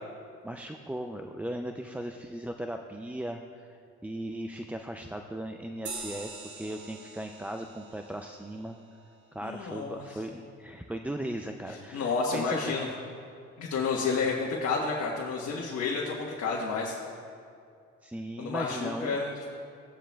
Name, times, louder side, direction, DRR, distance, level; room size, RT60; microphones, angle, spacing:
voice 1, 0.4-8.8 9.3-12.8 13.8-14.1 18.0-19.2, right 1 dB, 5° right, 3 dB, 0.4 m, -38 dB
sound 1, 5.9-10.8, right 3 dB, 70° right, 1.7 m, -46 dB
voice 2, 9.4-10.0 11.9-12.9 13.6-17.0 18.4-19.5, left 4 dB, 60° left, -4 dB, 1.3 m, -30 dB
15.0 x 9.8 x 2.3 m, 2.3 s
cardioid pair, 90°, 30 cm